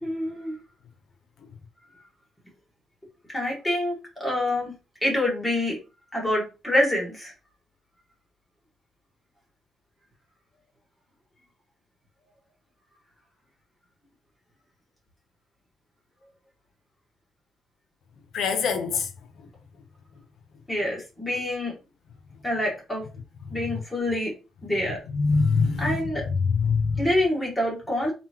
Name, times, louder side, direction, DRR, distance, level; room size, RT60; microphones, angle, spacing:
voice 1, 0.0-0.6 3.3-4.7 5.0-5.8 6.1-7.3 20.7-21.7 22.4-23.0 23.5-24.3 24.6-25.0 25.8-26.2 27.0-28.1, left 1 dB, 10° left, 1.7 m, -26 dB
voice 2, 18.3-19.1 19.4-19.5 22.3-22.4 23.1-23.8 25.1-27.1, left 4 dB, 75° left, 0.9 m, -25 dB
3.8 x 3.8 x 3.0 m
cardioid pair, 145°, 0 cm